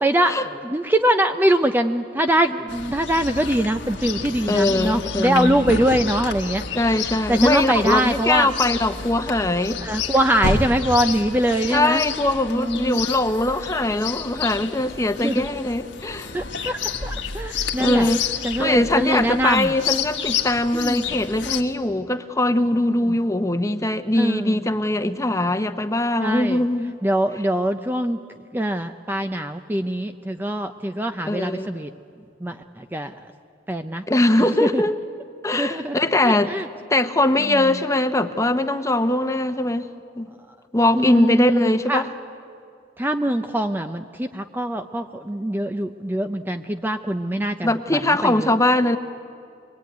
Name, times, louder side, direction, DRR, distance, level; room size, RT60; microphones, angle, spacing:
voice 1, 0.0-6.7 7.3-8.5 9.8-12.0 12.5-13.0 15.2-15.4 16.3-18.1 18.4-19.7 20.7-21.0 22.9-23.2 24.2-24.7 25.1-25.2 26.2-26.6 27.0-31.9 32.4-33.3 33.7-34.0 34.4-34.8 35.5-36.0 36.2-36.7 37.4-37.8 40.9-42.1 43.0-48.5, right 1 dB, 10° right, 7 dB, 0.5 m, -23 dB
Chirp tweet, 2.7-21.6, left 6 dB, 75° left, 1.5 m, -30 dB
voice 2, 4.5-5.5 6.7-9.8 11.7-16.3 17.8-18.2 18.6-26.9 31.3-31.7 34.1-35.0 35.4-36.5 36.9-39.9 40.1-40.3 40.7-42.0 47.6-49.0, left 1 dB, 15° left, 8 dB, 1.0 m, -21 dB
24.5 x 22.0 x 9.3 m, 2.5 s
head